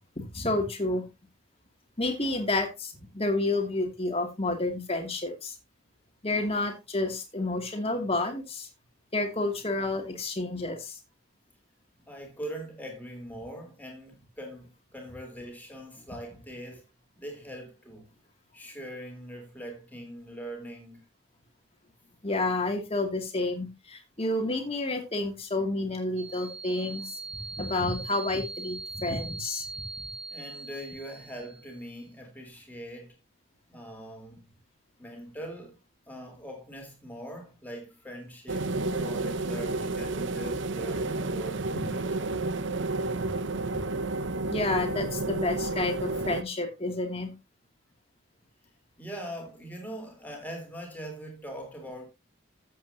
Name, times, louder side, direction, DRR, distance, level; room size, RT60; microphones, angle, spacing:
voice 1, 0.2-1.0 2.0-5.5 6.2-8.7 9.1-11.0 22.2-27.0 27.5-29.6 41.7-41.8 43.0-43.1 44.5-47.3, left 2 dB, 30° left, 2.4 m, -30 dB
voice 2, 12.1-16.9 17.1-18.1 18.5-21.1 30.3-33.2 33.7-34.5 35.0-35.8 36.1-42.4 49.0-52.1, right 1 dB, 10° left, 3.6 m, -42 dB
sound 1, 26.2-31.8, right 3 dB, 30° right, 2.9 m, -41 dB
sound 2, 38.5-46.4, right 2 dB, 60° right, 0.8 m, -31 dB
13.0 x 8.3 x 2.8 m
head